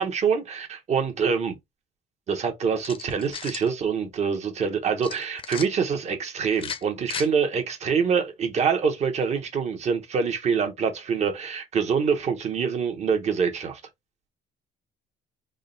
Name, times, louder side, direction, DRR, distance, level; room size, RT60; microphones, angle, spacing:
voice 1, 0.0-1.6 2.3-13.8, right 6 dB, 40° right, 1.1 m, -25 dB
sound 1, 2.8-3.7 5.0-5.7 6.5-7.3, left 6 dB, 30° left, 0.6 m, -35 dB
3.7 x 2.2 x 3.9 m
cardioid pair, 130°, 17 cm